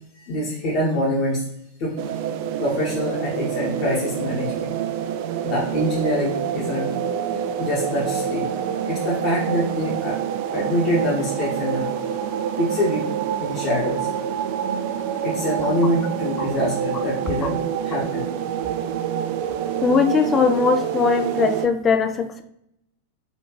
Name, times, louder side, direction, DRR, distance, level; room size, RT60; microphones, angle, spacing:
voice 1, 0.1-1.4 1.8-2.0 2.6-4.7 5.4-6.9 7.6-8.5 8.8-10.2 10.5-11.9 12.6-13.1 13.4-14.1 15.2-18.3, left 1 dB, 40° left, -8 dB, 1.2 m, -25 dB
sound 1, 2.0-21.7, right 9 dB, 50° right, 0.3 m, -27 dB
voice 2, 19.8-22.4, left 5 dB, 25° left, 7 dB, 0.4 m, -20 dB
4.1 x 2.8 x 3.0 m, 0.77 s
figure-of-eight pair, 90°, 0 cm